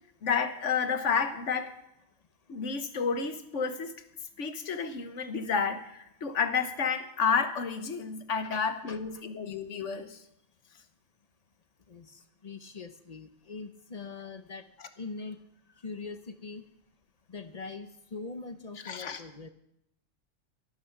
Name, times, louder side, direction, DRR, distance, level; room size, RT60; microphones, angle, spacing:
voice 1, 0.2-1.7 2.5-3.9 4.4-10.2 18.8-19.2, left 6 dB, 70° left, 9 dB, 1.4 m, -30 dB
voice 2, 8.4-9.0 11.9-14.6 15.0-15.4 15.8-16.6 17.3-19.5, left 4 dB, 35° left, 10 dB, 0.8 m, -42 dB
13.5 x 11.5 x 5.9 m, 0.79 s
omnidirectional pair, 1.3 m